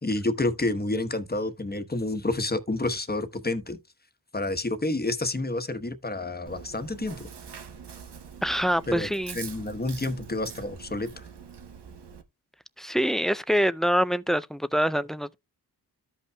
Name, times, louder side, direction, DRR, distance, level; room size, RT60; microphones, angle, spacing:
voice 1, 0.0-3.8 4.3-7.3 8.9-9.1 9.3-11.2, left 2 dB, 25° left, 1.1 m, -29 dB
Chewing mastication, 6.5-12.2, right 6 dB, 85° right, 0.9 m, -44 dB
voice 2, 8.4-9.4 12.8-15.3, equal, ahead, 0.4 m, -25 dB
13.5 x 5.5 x 2.2 m
wide cardioid pair, 55°, 39 cm